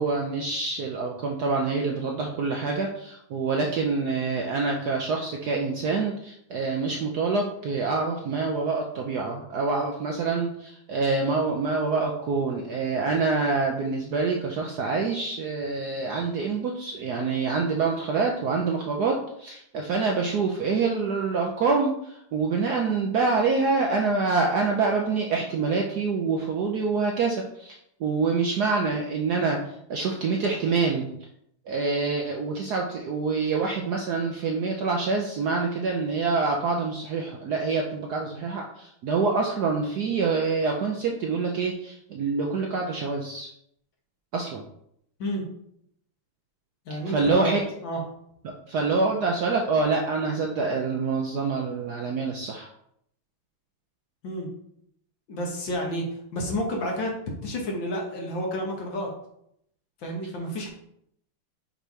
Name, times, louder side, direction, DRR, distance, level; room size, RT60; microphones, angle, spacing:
voice 1, 0.0-29.6 29.9-31.1 31.7-43.5 44.3-44.6 47.1-47.6 48.4-52.7, right 4 dB, 65° right, 1 dB, 1.0 m, -26 dB
voice 2, 46.9-48.0 54.2-54.5 55.3-56.1 56.3-57.2 57.4-59.1 60.0-60.7, equal, 60° left, 0 dB, 2.1 m, -30 dB
5.8 x 4.0 x 4.7 m, 0.73 s
omnidirectional pair, 2.4 m